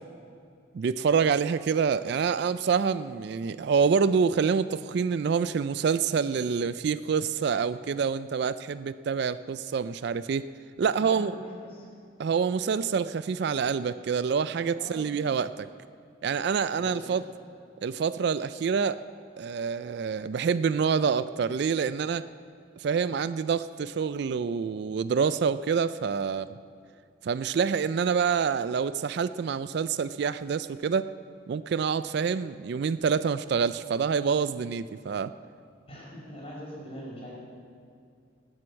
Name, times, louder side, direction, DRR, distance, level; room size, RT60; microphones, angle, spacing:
voice 1, 0.7-10.5 10.8-11.3 12.2-15.7 16.2-17.2 17.8-19.0 19.4-22.3 22.8-26.6 27.2-31.1 31.5-35.3, right 6 dB, 55° right, 15 dB, 0.3 m, -27 dB
voice 2, 10.9-11.9 14.8-15.1 16.8-17.1 35.9-37.3, equal, 30° left, -4 dB, 4.3 m, -42 dB
18.0 x 7.7 x 8.4 m, 2.4 s
head